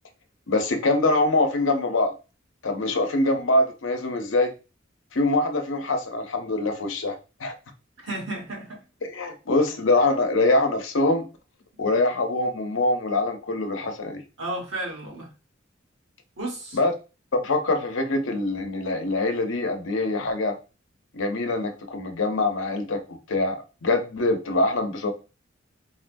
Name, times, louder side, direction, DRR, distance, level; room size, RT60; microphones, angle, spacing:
voice 1, 0.5-2.1 2.6-4.5 5.1-7.1 7.4-7.5 9.0-11.3 11.8-14.2 16.7-16.9 17.4-20.5 21.1-23.6 23.8-25.1, left 2 dB, 80° left, 0.7 m, -24 dB
voice 2, 8.0-8.8 14.4-15.3 16.4-16.8, right 1 dB, 75° right, 1.5 m, -32 dB
3.9 x 2.2 x 2.6 m
head